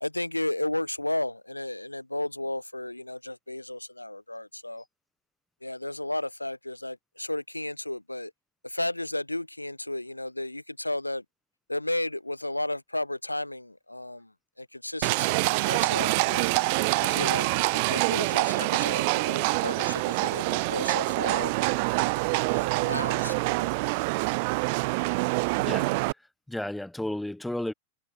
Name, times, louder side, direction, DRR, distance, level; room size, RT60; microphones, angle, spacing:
voice 1, 0.0-4.8 5.6-8.3 8.6-11.2 11.7-14.3 14.6-16.5 17.0-22.2 22.5-23.8, left 1 dB, 85° left, 0.6 m, -33 dB
Livestock farm animals working animals, 15.0-26.1, right 28 dB, 45° right, 0.6 m, -26 dB
voice 2, 25.6-26.1 26.5-27.7, left 1 dB, 5° left, 1.1 m, -33 dB
figure-of-eight pair, 90°, 0 cm